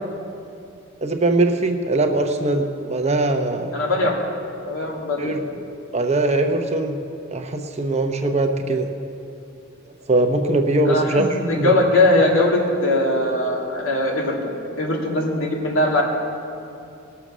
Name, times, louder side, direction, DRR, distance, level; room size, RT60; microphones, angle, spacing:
voice 1, 1.0-3.7 5.2-5.4 5.9-7.0 7.3-8.9 10.1-11.7, right 2 dB, 35° right, 5 dB, 0.8 m, -21 dB
voice 2, 3.7-4.1 4.6-5.3 10.8-14.5 14.8-16.0, left 2 dB, 90° left, -1 dB, 2.4 m, -20 dB
20.0 x 6.8 x 6.2 m, 2.7 s
head